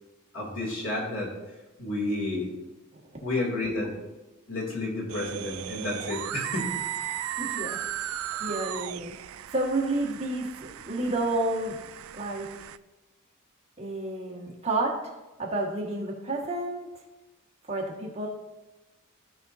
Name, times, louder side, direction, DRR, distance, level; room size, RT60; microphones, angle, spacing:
voice 1, 0.3-1.3 1.8-2.5 3.2-3.9 4.5-6.7, left 2 dB, 85° left, -3 dB, 2.8 m, -30 dB
sound 1, 5.1-12.8, right 11 dB, 80° right, 0.3 m, -36 dB
voice 2, 7.4-7.8 8.0-9.1 9.5-10.5 10.9-11.8 12.1-12.5 13.8-15.1 15.4-16.9 17.7-18.3, right 2 dB, 30° right, -2 dB, 1.8 m, -30 dB
16.0 x 5.4 x 2.8 m, 1.1 s
head